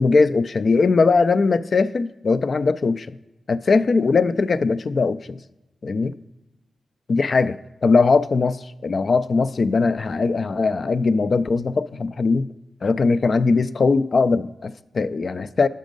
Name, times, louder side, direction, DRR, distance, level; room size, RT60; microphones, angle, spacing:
voice 1, 0.0-3.2 3.5-5.4 5.8-6.1 7.1-12.5 12.8-15.7, left 4 dB, 60° left, 0.3 m, -20 dB
7.3 x 5.3 x 5.2 m
cardioid pair, 45°, 0 cm